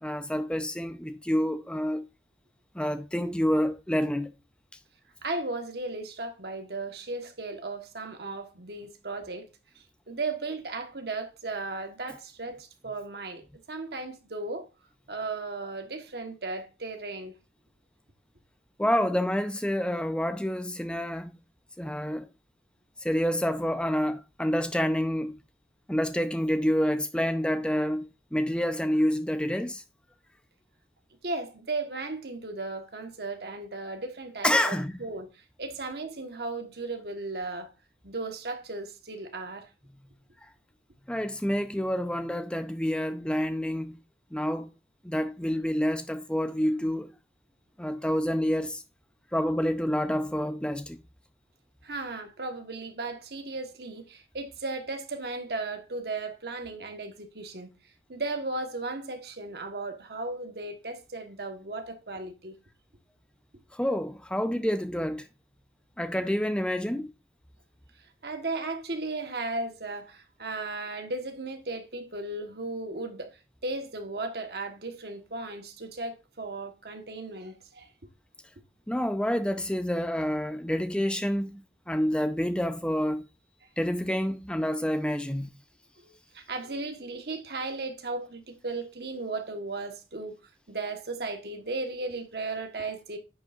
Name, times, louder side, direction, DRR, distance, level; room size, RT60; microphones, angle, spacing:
voice 1, 0.0-2.0 2.7-4.3 18.8-21.3 21.8-22.3 23.0-25.3 25.9-28.1 28.3-29.8 34.4-35.0 41.1-44.0 44.3-44.7 45.0-47.1 47.8-48.8 49.3-51.0 63.7-65.3 66.0-67.1 78.9-81.6 81.9-83.2 83.8-85.5, equal, 5° left, 0.6 m, -28 dB
voice 2, 5.2-9.5 10.1-14.7 15.1-17.4 31.2-35.3 35.6-37.7 38.0-39.7 51.8-57.7 58.1-62.6 68.2-73.3 73.6-77.9 86.0-90.3 90.7-93.2, right 3 dB, 60° right, 1.3 m, -36 dB
10.0 x 6.8 x 2.5 m
head